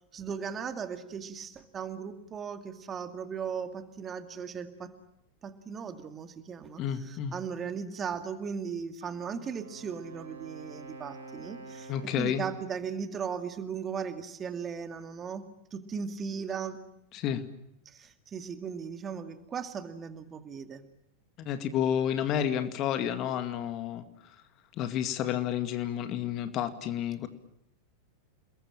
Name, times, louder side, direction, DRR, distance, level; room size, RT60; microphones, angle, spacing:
voice 1, 0.1-4.9 5.4-15.4 15.7-16.8 17.9-20.8, right 6 dB, 25° right, 8 dB, 2.3 m, -37 dB
voice 2, 6.8-7.3 11.9-12.5 17.1-17.4 21.4-24.0 24.8-27.3, left 9 dB, 35° left, 9 dB, 2.2 m, -30 dB
Wind instrument woodwind instrument, 9.0-12.8, right 3 dB, 70° right, 4.3 m, -48 dB
29.5 x 21.5 x 8.9 m, 0.80 s
figure-of-eight pair, 90°, 0 cm